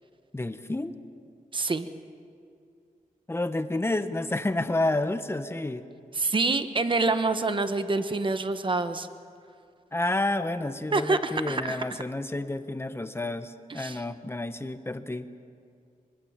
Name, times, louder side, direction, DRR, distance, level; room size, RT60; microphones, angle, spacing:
voice 1, 0.3-1.0 3.3-5.8 9.9-15.3, left 2 dB, 15° left, 9 dB, 1.0 m, -30 dB
voice 2, 1.5-1.9 6.1-9.1 10.9-12.0 13.7-14.0, right 3 dB, 35° right, 9 dB, 1.0 m, -27 dB
24.5 x 23.5 x 7.3 m, 2.4 s
wide cardioid pair, 140°, 15 cm